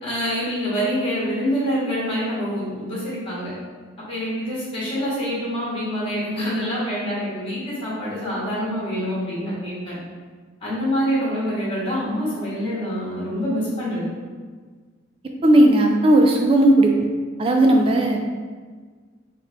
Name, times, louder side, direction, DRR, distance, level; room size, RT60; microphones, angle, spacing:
voice 1, 0.0-3.5 4.1-10.0 10.6-14.0, equal, 25° left, -8 dB, 1.5 m, -26 dB
voice 2, 15.4-16.9 17.4-18.2, right 1 dB, 25° right, 2 dB, 0.3 m, -15 dB
3.7 x 3.0 x 3.5 m, 1.5 s
head